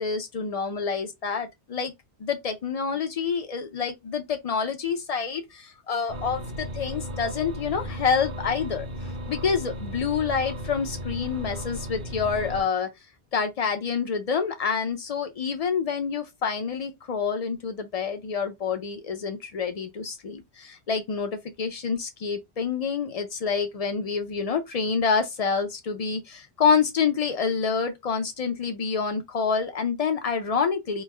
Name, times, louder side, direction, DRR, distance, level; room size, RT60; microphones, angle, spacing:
voice 1, 0.0-1.9 2.2-8.9 9.3-12.9 13.3-31.0, left 6 dB, 60° left, 0.4 m, -27 dB
sound 1, 6.1-12.6, equal, 45° right, 0.7 m, -35 dB
3.2 x 2.0 x 3.2 m
omnidirectional pair, 1.1 m